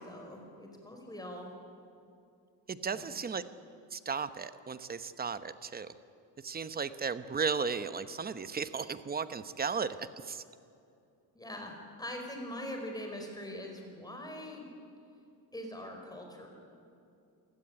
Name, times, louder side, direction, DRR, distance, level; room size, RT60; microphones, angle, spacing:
voice 1, 0.0-1.5 2.8-3.2 11.3-14.7 15.5-16.5, left 1 dB, 10° left, 2 dB, 4.7 m, -43 dB
voice 2, 2.7-3.4 3.9-5.9 6.4-9.9 10.3-10.4, right 5 dB, 25° right, 12 dB, 0.9 m, -35 dB
27.0 x 17.0 x 9.9 m, 2.6 s
cardioid pair, 150°, 40 cm